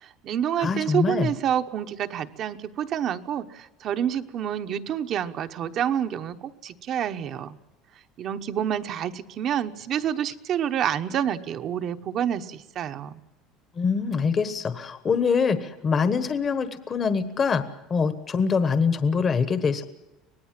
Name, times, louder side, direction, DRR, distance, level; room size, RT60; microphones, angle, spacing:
voice 1, 0.0-7.6 8.2-13.1, right 9 dB, 35° right, 8 dB, 1.0 m, -28 dB
voice 2, 0.6-1.3 13.8-17.6 17.9-19.8, left 5 dB, 25° left, 11 dB, 1.2 m, -24 dB
25.0 x 19.0 x 7.6 m, 0.99 s
cardioid pair, 165°, 0 cm